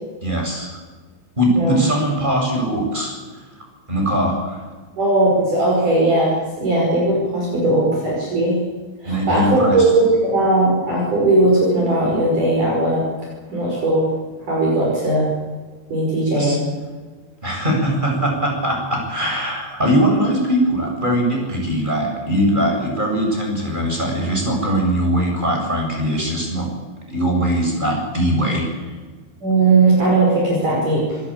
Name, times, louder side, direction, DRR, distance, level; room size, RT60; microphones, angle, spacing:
voice 1, 0.2-0.8 1.4-3.4 3.9-4.6 9.0-9.9 16.3-16.6 17.4-26.7 27.1-28.9, equal, 10° right, 0 dB, 7.3 m, -21 dB
voice 2, 5.0-8.6 9.0-13.0 13.5-14.1 14.4-15.3 15.9-16.6 29.4-31.2, right 2 dB, 45° right, -3 dB, 7.0 m, -18 dB
27.0 x 15.5 x 8.8 m, 1.4 s
omnidirectional pair, 5.3 m